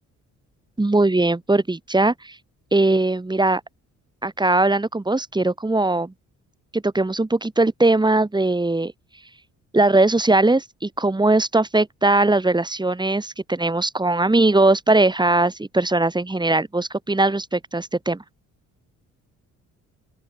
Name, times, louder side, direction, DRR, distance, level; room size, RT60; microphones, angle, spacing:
voice 1, 0.8-2.4 2.7-3.6 4.2-6.1 6.7-8.9 9.7-18.2, right 2 dB, 15° right, 3.5 m, -20 dB
open air
cardioid pair, 90°, 30 cm